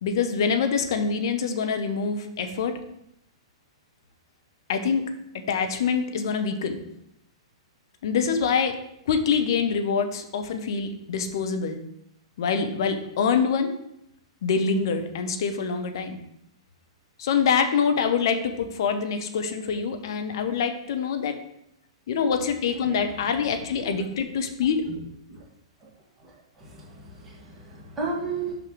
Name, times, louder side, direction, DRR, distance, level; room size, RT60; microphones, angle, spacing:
voice 1, 0.0-2.7 4.7-5.1 5.5-6.8 8.0-8.7 9.1-11.8 12.4-13.7 14.4-16.2 17.2-21.4 22.1-24.8, left 6 dB, 50° left, 7 dB, 1.0 m, -25 dB
voice 2, 26.6-28.5, right 4 dB, 15° right, -6 dB, 2.6 m, -34 dB
5.7 x 5.4 x 5.0 m, 0.78 s
figure-of-eight pair, 105°, 3 cm